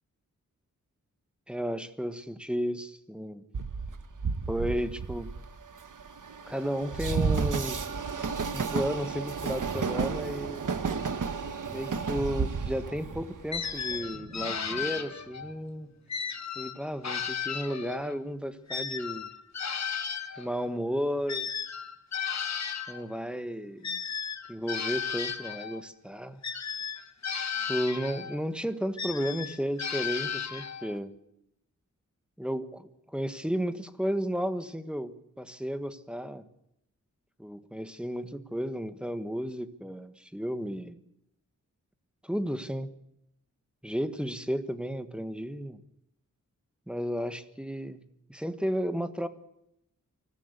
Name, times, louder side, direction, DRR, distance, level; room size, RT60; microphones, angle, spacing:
voice 1, 1.5-3.4 4.5-5.3 6.5-7.8 8.5-10.6 11.7-15.9 16.5-19.3 20.4-21.5 22.9-24.0 24.5-26.4 27.7-31.1 32.4-36.4 37.4-41.0 42.2-42.9 43.8-45.8 46.9-48.0 48.3-49.3, equal, 5° right, 11 dB, 1.4 m, -33 dB
Train, 3.5-14.0, right 5 dB, 80° right, 1.6 m, -32 dB
Sink (filling or washing), 9.1-16.4, right 1 dB, 30° right, 6.6 m, -48 dB
sound 1, 13.5-15.5 16.1-18.2 18.7-23.0 23.8-25.8 26.4-28.4 29.0-31.0, left 7 dB, 60° left, 1.5 m, -35 dB
24.5 x 15.0 x 8.3 m, 0.80 s
wide cardioid pair, 115°, 31 cm